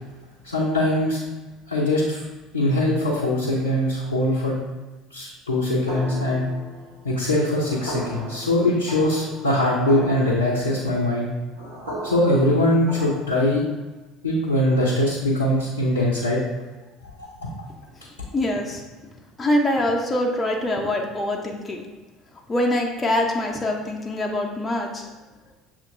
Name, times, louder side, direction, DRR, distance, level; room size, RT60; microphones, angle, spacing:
voice 1, 0.4-1.2 1.7-2.2 2.5-4.6 5.1-6.5 7.0-11.3 12.0-13.6 14.2-16.4 17.2-17.5, left 1 dB, 85° left, -5 dB, 0.6 m, -22 dB
sound 1, 5.9-13.7, right 1 dB, 75° right, 1.3 m, -36 dB
voice 2, 18.3-18.8 19.4-21.8 22.5-25.1, left 1 dB, 20° left, 1 dB, 0.6 m, -24 dB
6.7 x 2.8 x 2.5 m, 1.2 s
figure-of-eight pair, 65°, 0 cm